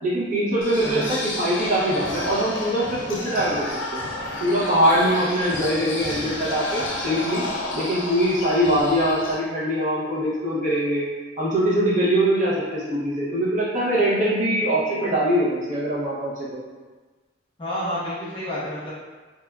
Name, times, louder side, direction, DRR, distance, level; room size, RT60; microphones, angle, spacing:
voice 1, 0.0-4.0 4.4-7.4 7.7-11.1 11.4-16.6, equal, 40° right, -7 dB, 0.6 m, -22 dB
sound 1, 0.6-9.3, left 1 dB, 65° left, 0.5 m, -31 dB
voice 2, 17.6-18.9, equal, 25° left, -9 dB, 0.8 m, -29 dB
2.9 x 2.3 x 2.2 m, 1.3 s
head